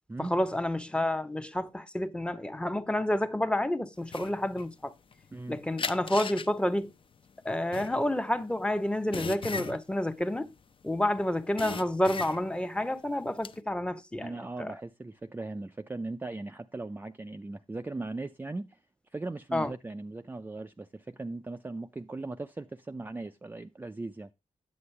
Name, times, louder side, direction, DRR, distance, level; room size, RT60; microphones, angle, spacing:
voice 1, 0.2-4.9 5.5-6.9 7.4-10.5 10.8-14.8 19.5-19.7, left 1 dB, 10° left, 0.8 m, -29 dB
sound 1, 4.1-5.4 5.8-11.0 11.3-12.7 13.1-13.6, left 5 dB, 45° left, 0.7 m, -38 dB
voice 2, 14.2-18.8 19.1-24.3, right 2 dB, 15° right, 0.4 m, -38 dB
9.6 x 7.8 x 3.2 m
wide cardioid pair, 100°, 13 cm